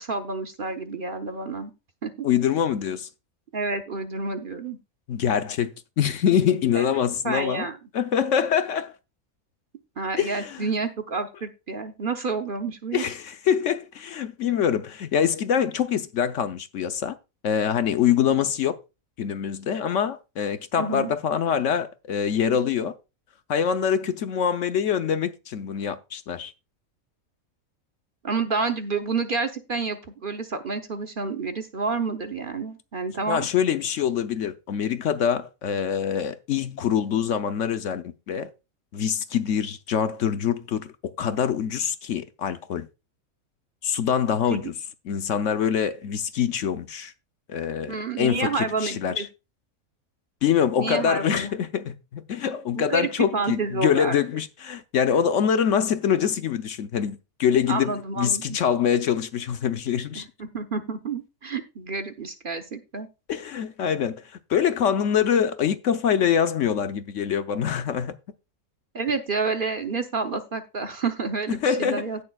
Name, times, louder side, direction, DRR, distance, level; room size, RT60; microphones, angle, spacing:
voice 1, 0.0-1.7 2.0-2.1 3.5-4.8 6.8-6.9 7.2-7.8 10.0-13.0 20.8-21.1 28.2-33.4 44.5-44.7 47.9-49.3 50.8-51.5 52.7-54.2 57.7-58.6 60.1-63.1 68.9-72.2, right 4 dB, 45° right, 0.9 m, -29 dB
voice 2, 2.2-3.1 5.1-5.7 6.0-7.7 7.9-8.9 10.2-10.7 12.9-17.2 17.4-18.7 19.2-22.9 23.5-26.5 33.3-38.5 38.9-42.9 43.8-44.7 45.1-47.1 47.5-49.3 50.4-60.3 63.3-64.2 64.5-68.1 71.5-72.1, left 8 dB, 65° left, 1.0 m, -24 dB
17.0 x 6.7 x 2.3 m
omnidirectional pair, 1.5 m